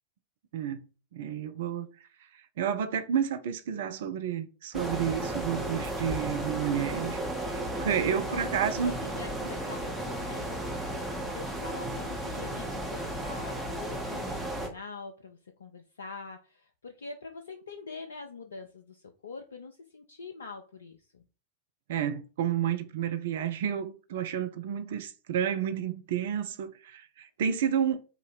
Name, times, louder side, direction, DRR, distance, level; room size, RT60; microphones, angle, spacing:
voice 1, 0.5-0.9 1.1-1.9 2.6-7.2 7.5-9.0 21.9-28.0, right 8 dB, 55° right, 0.4 m, -30 dB
sound 1, 4.7-14.7, right 1 dB, 5° right, 0.9 m, -34 dB
voice 2, 8.1-21.3, left 4 dB, 70° left, 0.4 m, -44 dB
2.8 x 2.6 x 3.9 m
figure-of-eight pair, 90°, 0 cm